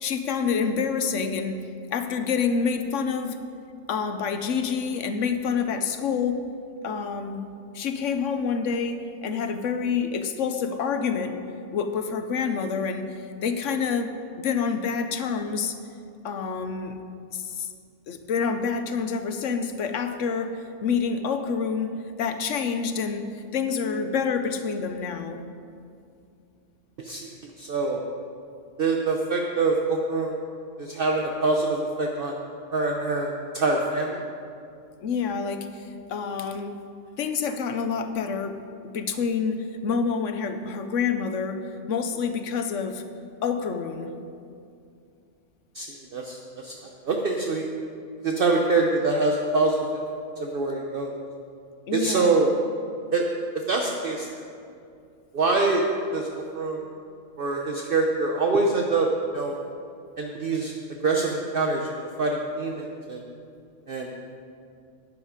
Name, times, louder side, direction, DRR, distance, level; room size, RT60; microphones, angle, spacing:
voice 1, 0.0-1.6 1.9-3.4 3.9-6.5 6.8-7.4 7.7-11.4 11.7-13.1 13.4-14.1 14.4-15.7 16.2-17.0 17.3-17.7 18.1-25.4 35.0-36.8 37.2-38.6 38.9-41.6 41.9-43.0 43.4-44.1 51.9-52.3, left 6 dB, 85° left, 8 dB, 1.2 m, -27 dB
voice 2, 27.0-27.3 27.6-28.0 28.8-30.4 30.8-32.4 32.7-34.2 45.7-47.7 48.2-50.0 50.4-51.1 51.9-52.5 53.1-53.2 53.7-54.4 55.3-55.8 56.1-56.8 57.4-59.1 59.3-59.6 60.2-60.7 61.0-63.2 63.9-64.1, right 3 dB, 50° right, 1 dB, 1.0 m, -25 dB
11.5 x 9.8 x 5.0 m, 2.5 s
omnidirectional pair, 1.2 m